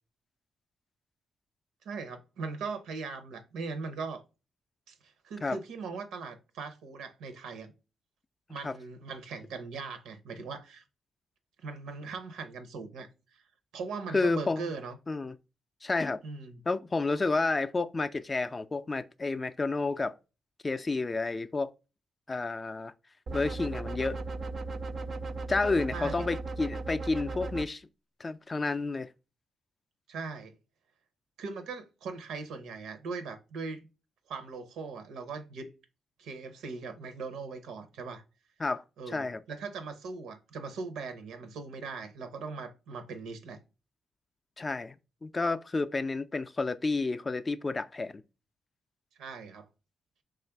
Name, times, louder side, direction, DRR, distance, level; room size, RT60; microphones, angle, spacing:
voice 1, 1.8-4.2 4.9-7.7 8.5-10.8 11.6-13.4 13.7-15.0 16.2-16.6 25.9-26.2 30.1-30.5 31.4-33.9 34.3-35.7 36.2-38.2 39.0-43.6 49.2-49.7, right 4 dB, 90° right, 0.6 m, -40 dB
voice 2, 14.1-14.6 15.1-15.3 15.8-16.2 16.7-20.1 20.6-21.7 22.3-22.9 23.3-24.2 25.5-27.8 28.2-29.1 38.6-38.8 39.1-39.4 44.6-48.1, left 3 dB, 30° left, 0.3 m, -30 dB
sound 1, 23.3-27.7, right 3 dB, 45° right, 0.3 m, -36 dB
3.2 x 2.4 x 4.4 m
cardioid pair, 75°, 0 cm